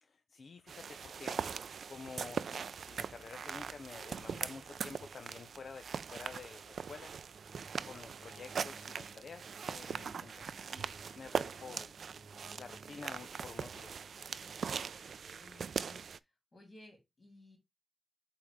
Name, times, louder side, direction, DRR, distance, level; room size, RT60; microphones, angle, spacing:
voice 1, 0.0-1.4 1.8-7.1 7.8-11.9 12.3-14.1, left 5 dB, 55° left, 0.5 m, -50 dB
sound 1, 0.7-16.2, right 6 dB, 75° right, 0.3 m, -41 dB
Keyboard (musical), 7.3-15.2, right 3 dB, 35° right, 1.0 m, -60 dB
voice 2, 7.6-7.9 9.9-10.3 14.9-16.0 16.5-17.6, left 1 dB, 40° left, 4.3 m, -58 dB
8.6 x 3.8 x 3.5 m
wide cardioid pair, 160°, 0 cm